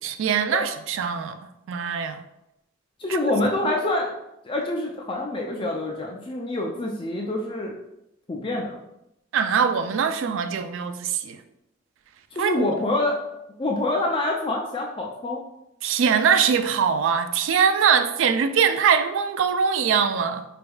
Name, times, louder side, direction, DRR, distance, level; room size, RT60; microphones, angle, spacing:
voice 1, 0.0-1.4 1.7-2.2 3.1-3.2 9.3-11.4 12.4-12.7 15.8-20.5, right 7 dB, 80° right, 0.3 m, -22 dB
voice 2, 3.0-4.1 4.4-7.7 8.3-8.8 12.3-13.3 13.6-15.4, left 2 dB, 25° left, 0.3 m, -26 dB
4.2 x 3.4 x 2.3 m
head